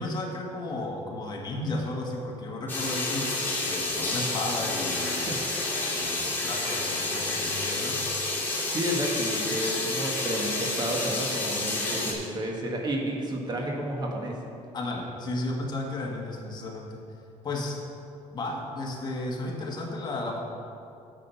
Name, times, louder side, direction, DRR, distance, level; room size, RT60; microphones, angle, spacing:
voice 1, 0.0-5.3 5.9-8.0 14.7-17.0 17.4-17.8 18.3-20.4, left 2 dB, 35° left, -1 dB, 1.7 m, -33 dB
sound 1, 2.7-12.1, left 2 dB, 15° left, 2.5 m, -29 dB
voice 2, 5.1-5.5 8.7-14.4, right 1 dB, 35° right, 0 dB, 1.5 m, -31 dB
9.7 x 7.8 x 5.7 m, 2.5 s
cardioid pair, 135°, 13 cm